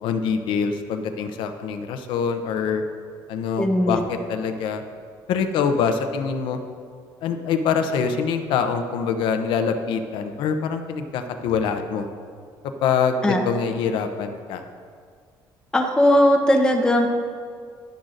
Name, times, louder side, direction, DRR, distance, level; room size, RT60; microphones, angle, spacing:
voice 1, 0.0-2.8 3.3-4.8 5.3-6.6 7.2-12.1 12.8-14.6, left 6 dB, 80° left, 7 dB, 0.7 m, -24 dB
voice 2, 3.6-4.0 13.2-13.4 15.7-17.1, left 1 dB, 10° left, 2 dB, 0.9 m, -18 dB
12.0 x 10.5 x 2.6 m, 2.1 s
cardioid pair, 145°, 8 cm